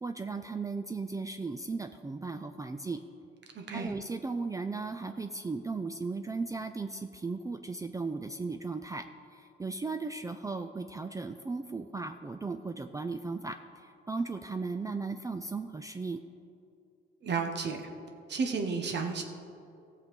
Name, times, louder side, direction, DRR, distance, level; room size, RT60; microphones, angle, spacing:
voice 1, 0.0-3.0 3.7-16.2, right 3 dB, 15° right, 8 dB, 0.4 m, -36 dB
voice 2, 3.5-3.9 17.2-17.8 18.3-19.2, right 5 dB, 60° right, 4 dB, 1.2 m, -32 dB
15.0 x 6.6 x 5.3 m, 2.5 s
cardioid pair, 90°, 20 cm